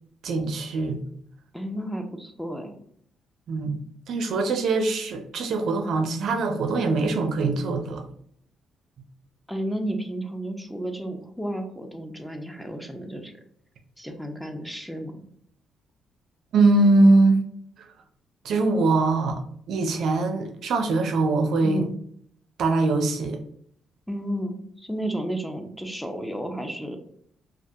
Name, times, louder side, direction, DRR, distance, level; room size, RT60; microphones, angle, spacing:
voice 1, 0.2-1.0 3.5-8.0 16.5-17.5 18.4-19.4 19.7-21.9 22.6-23.4, right 3 dB, 70° right, 5 dB, 0.4 m, -22 dB
voice 2, 1.5-2.8 9.5-13.3 14.0-15.2 21.6-21.9 24.1-27.0, equal, 5° left, 4 dB, 0.4 m, -32 dB
2.3 x 2.2 x 2.7 m, 0.65 s
cardioid pair, 90°, 0 cm